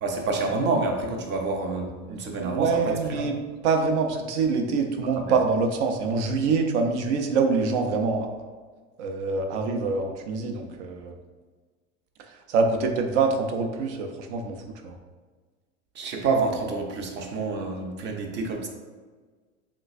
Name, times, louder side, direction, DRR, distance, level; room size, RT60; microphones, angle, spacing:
voice 1, 0.0-3.3 16.0-18.7, right 3 dB, 30° right, 2 dB, 0.5 m, -28 dB
voice 2, 2.4-3.4 3.6-8.5 9.0-11.2 12.2-15.0, right 4 dB, 75° right, 4 dB, 0.6 m, -25 dB
3.3 x 2.9 x 2.4 m, 1.4 s
supercardioid pair, 115°, 35 cm